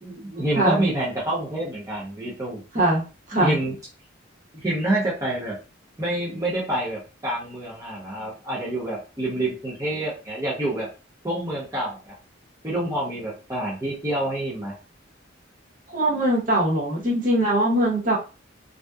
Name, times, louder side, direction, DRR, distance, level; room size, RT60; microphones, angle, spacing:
voice 1, 0.0-2.6 3.3-3.8 4.5-5.5 6.0-10.9 11.2-12.1 12.6-14.7, right 1 dB, 15° right, -7 dB, 0.7 m, -27 dB
voice 2, 2.7-3.6 15.9-18.2, right 1 dB, 45° right, -4 dB, 0.9 m, -21 dB
2.7 x 2.1 x 2.3 m, 0.32 s
head